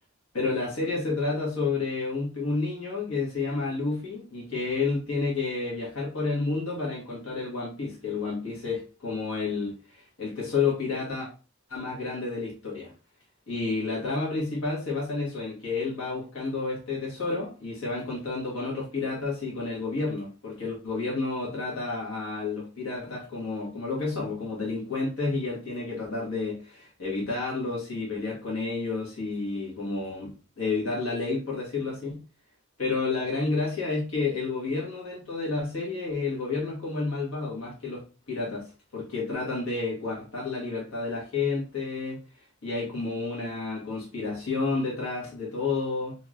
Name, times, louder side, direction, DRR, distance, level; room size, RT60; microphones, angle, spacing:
voice 1, 0.3-11.3 11.7-12.9 13.5-32.2 32.8-38.0 38.3-38.7 38.9-42.2 42.6-46.1, left 3 dB, 90° left, -4 dB, 1.3 m, -30 dB
3.0 x 2.8 x 2.4 m, 0.35 s
head